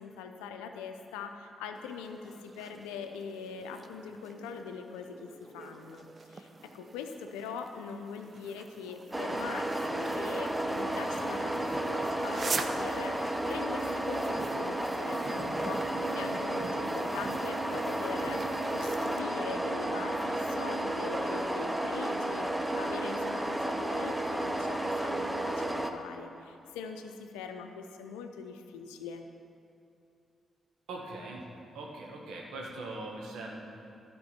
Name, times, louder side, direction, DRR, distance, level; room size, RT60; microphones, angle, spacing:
voice 1, 0.0-13.2 13.5-18.4 18.7-29.2, left 6 dB, 90° left, 6 dB, 0.5 m, -42 dB
sound 1, 1.8-19.2, right 4 dB, 50° right, 0.6 m, -45 dB
sound 2, 9.1-25.9, right 1 dB, 10° right, 0.9 m, -32 dB
voice 2, 30.9-31.4 31.7-33.6, right 2 dB, 80° right, -1 dB, 1.5 m, -41 dB
12.0 x 5.3 x 5.6 m, 2.7 s
hypercardioid pair, 45°, 0 cm